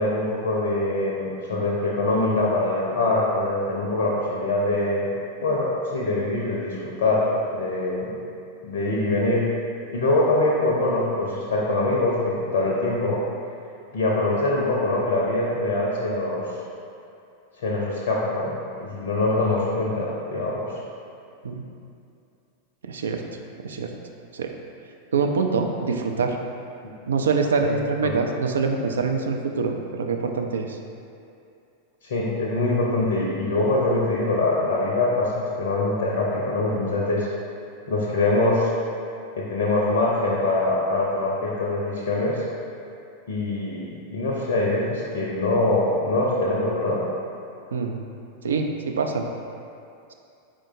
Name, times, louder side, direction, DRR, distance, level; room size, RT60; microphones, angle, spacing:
voice 1, 0.0-5.1 5.4-8.1 8.6-9.4 9.9-13.2 13.9-16.4 17.6-20.7 27.6-27.7 28.0-28.1 32.0-37.3 37.9-38.7 39.4-42.4 43.3-47.0, left 2 dB, 60° left, -4 dB, 0.5 m, -23 dB
voice 2, 22.8-23.2 23.6-23.9 24.3-24.5 25.1-26.4 27.1-30.7 47.7-48.0 48.4-49.2, right 5 dB, 65° right, 4 dB, 0.3 m, -24 dB
4.7 x 3.7 x 2.6 m, 2.5 s
figure-of-eight pair, 90°, 0 cm